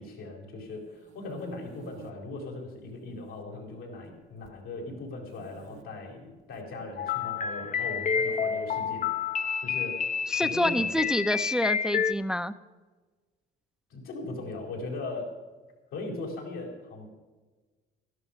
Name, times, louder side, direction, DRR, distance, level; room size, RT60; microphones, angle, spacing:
voice 1, 0.0-9.3 9.6-10.0 10.4-11.1 13.9-15.3 15.9-17.1, left 2 dB, 90° left, -1 dB, 4.4 m, -39 dB
sound 1, 0.7-2.1 2.8-3.4 3.7-4.6 5.2-5.8 6.4-6.6 7.8-8.7, right 6 dB, 80° right, 1.3 m, -54 dB
sound 2, 7.0-12.1, left 6 dB, 40° left, 0.6 m, -29 dB
voice 2, 10.3-12.5, equal, 5° right, 11 dB, 0.5 m, -28 dB
13.0 x 11.5 x 5.7 m, 1.3 s
cardioid pair, 90°, 20 cm